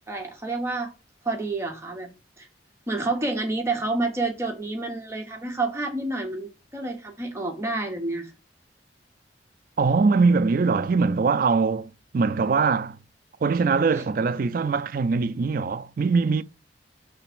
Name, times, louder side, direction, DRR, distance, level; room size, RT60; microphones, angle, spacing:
voice 1, 0.1-0.9 1.2-2.1 2.4-2.5 2.9-8.3 13.9-14.0, right 2 dB, 15° right, 0.9 m, -29 dB
voice 2, 9.8-13.0 13.4-16.4, right 4 dB, 50° right, 0.4 m, -22 dB
6.9 x 3.4 x 5.9 m
head